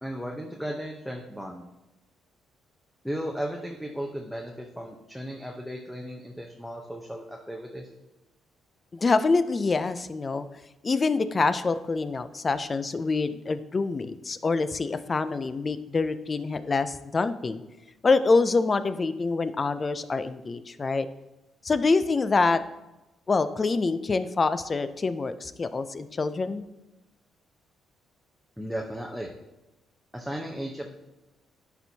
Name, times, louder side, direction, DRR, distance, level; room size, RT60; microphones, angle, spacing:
voice 1, 0.0-1.6 3.0-7.9 28.6-29.3 30.1-30.9, equal, ahead, 0 dB, 0.7 m, -35 dB
voice 2, 8.9-10.5 10.8-17.6 18.0-21.1 21.6-22.6 23.3-26.6, left 3 dB, 35° left, 12 dB, 0.4 m, -25 dB
11.0 x 4.4 x 2.8 m, 0.99 s
cardioid pair, 90°, 0 cm